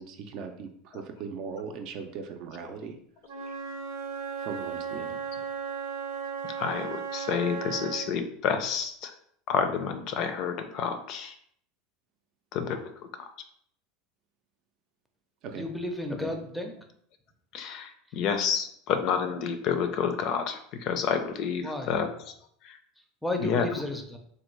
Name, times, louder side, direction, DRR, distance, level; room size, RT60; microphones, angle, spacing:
voice 1, 0.0-3.0 4.4-5.2 15.4-15.6, right 6 dB, 55° right, 5 dB, 0.5 m, -39 dB
Wind instrument woodwind instrument, 3.2-8.2, right 6 dB, 90° right, 0.8 m, -35 dB
voice 2, 6.6-9.1 9.5-11.3 12.5-12.8 17.5-22.1 23.4-23.7, left 7 dB, 55° left, 7 dB, 0.4 m, -29 dB
voice 3, 15.5-16.7 18.1-18.3 21.6-22.0 23.2-24.2, left 1 dB, ahead, 4 dB, 0.5 m, -33 dB
3.2 x 2.2 x 3.2 m, 0.65 s
supercardioid pair, 115°, 0 cm